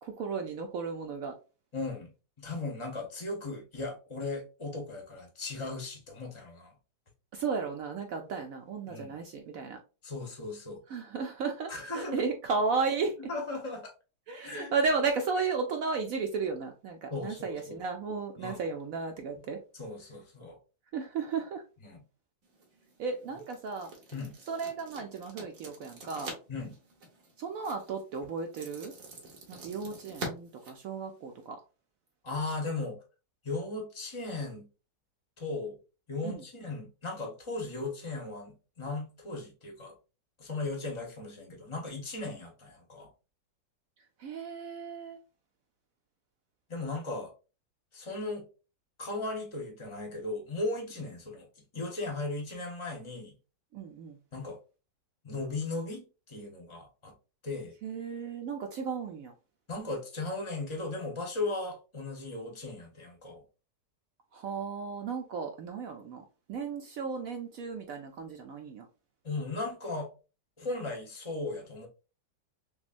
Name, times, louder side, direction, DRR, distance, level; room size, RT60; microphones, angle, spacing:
voice 1, 0.0-1.3 7.3-9.8 10.9-13.2 14.3-19.6 20.9-21.6 23.0-23.9 24.5-26.3 27.4-28.9 29.5-31.6 36.2-36.4 44.2-45.2 53.7-54.2 57.8-59.3 64.3-66.2 66.5-68.9, right 5 dB, 70° right, 0.8 m, -34 dB
voice 2, 1.7-2.1 2.4-6.7 8.9-9.1 10.0-10.8 11.7-12.2 13.3-13.9 14.4-14.7 17.1-17.8 18.4-18.6 19.7-20.6 21.9-22.0 24.1-24.3 26.5-26.7 32.2-33.0 33.4-34.7 35.4-35.8 36.1-39.9 40.4-43.1 46.7-47.3 47.9-48.4 49.0-51.5 51.7-53.3 54.3-54.6 55.2-57.1 57.4-57.7 59.7-63.4 69.2-70.1 70.6-71.9, left 3 dB, 25° left, 0.7 m, -37 dB
sound 1, 22.4-31.5, right 2 dB, 50° right, 1.4 m, -46 dB
6.0 x 2.1 x 2.4 m
omnidirectional pair, 1.9 m